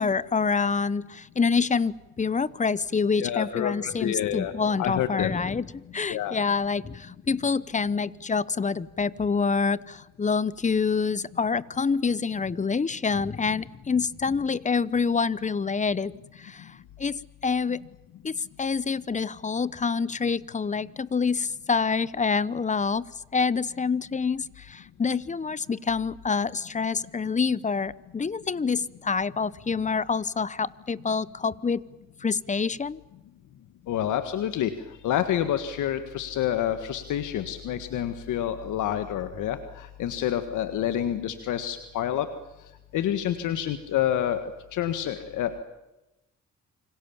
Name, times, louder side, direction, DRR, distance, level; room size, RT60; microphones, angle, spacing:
voice 1, 0.0-16.1 16.4-17.8 18.2-23.1 23.3-31.8 32.2-33.0, left 5 dB, 25° left, 20 dB, 0.9 m, -27 dB
voice 2, 3.2-4.5 4.8-5.3 6.1-6.4 33.9-34.7 35.0-42.3 42.9-45.6, left 11 dB, 80° left, 10 dB, 1.8 m, -28 dB
28.0 x 25.5 x 7.2 m, 0.96 s
cardioid pair, 90°, 30 cm